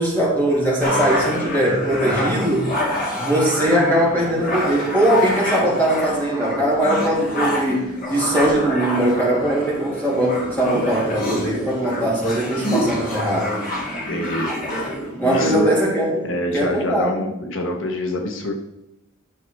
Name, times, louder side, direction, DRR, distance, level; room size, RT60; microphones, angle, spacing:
voice 1, 0.0-2.7 3.1-13.6 15.2-16.3 16.5-17.2, right 1 dB, 10° left, -5 dB, 3.1 m, -20 dB
sound 1, 0.8-15.8, left 1 dB, 40° left, 2.7 m, -26 dB
voice 2, 14.1-14.5 15.2-15.7 16.2-18.5, left 1 dB, 70° left, 3 dB, 1.2 m, -25 dB
11.0 x 6.6 x 4.7 m, 0.86 s
head